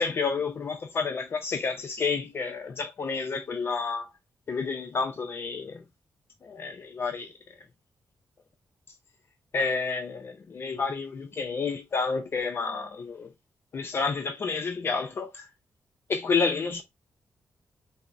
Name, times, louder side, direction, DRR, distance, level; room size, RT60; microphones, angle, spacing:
voice 1, 0.0-4.1 4.5-5.8 6.4-7.3 9.5-13.3 13.7-15.5 16.1-16.8, left 4 dB, 45° left, 0.6 m, -30 dB
5.5 x 2.1 x 2.5 m
wide cardioid pair, 120°, 5 cm